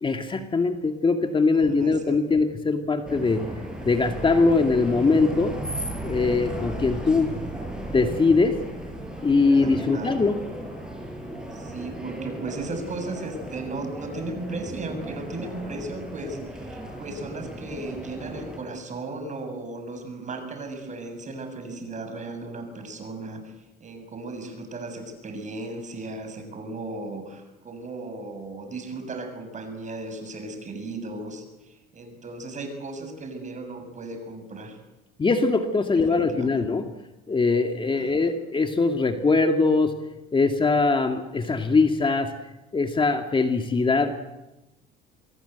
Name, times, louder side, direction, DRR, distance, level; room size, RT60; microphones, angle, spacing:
voice 1, 0.0-3.4 3.9-5.5 6.0-7.3 7.9-8.5 9.2-10.4 35.2-36.8 37.3-39.9 40.3-42.3 42.7-44.2, left 3 dB, 25° left, 5 dB, 2.2 m, -22 dB
voice 2, 1.5-2.4 9.5-10.2 11.5-23.5 23.8-34.8 36.1-36.7 37.9-38.1, right 2 dB, 35° right, 7 dB, 7.3 m, -36 dB
sound 1, 3.1-18.6, right 1 dB, 5° right, 8.0 m, -36 dB
26.5 x 22.0 x 8.2 m, 1.0 s
supercardioid pair, 100°, 21 cm